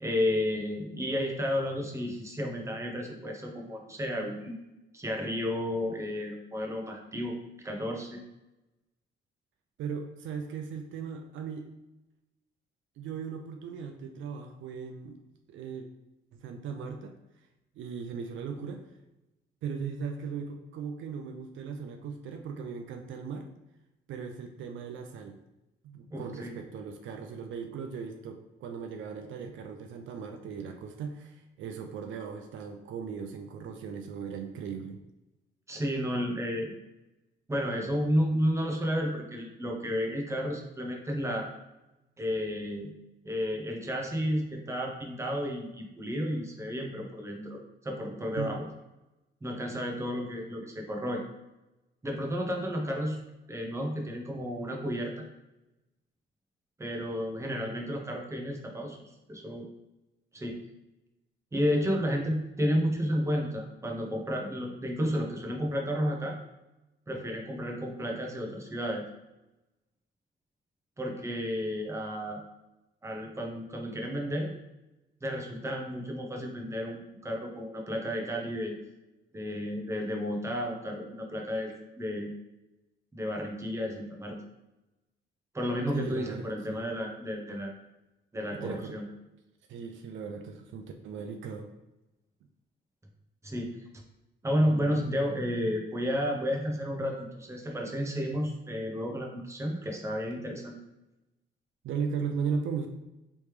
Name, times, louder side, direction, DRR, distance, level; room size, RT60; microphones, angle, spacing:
voice 1, 0.0-4.5 4.9-8.2 26.1-26.5 35.7-36.7 37.5-41.5 42.2-42.9 43.2-48.6 49.4-51.2 52.0-53.2 53.5-55.3 56.8-59.0 59.3-59.7 60.3-60.6 61.5-66.4 67.1-69.0 71.0-72.4 73.0-74.5 75.2-78.8 79.3-82.3 83.1-84.4 85.5-87.7 88.3-89.1 93.4-93.8 94.4-100.8, equal, 15° right, 1 dB, 0.8 m, -32 dB
voice 2, 9.8-11.7 13.0-15.2 15.5-15.9 16.3-17.2 17.8-18.8 19.6-23.5 24.1-25.4 25.8-35.0 48.4-48.5 85.9-86.9 88.5-89.0 89.7-91.7 101.8-102.9, right 6 dB, 75° right, 5 dB, 0.5 m, -37 dB
3.2 x 3.1 x 3.2 m, 0.96 s
cardioid pair, 90°, 20 cm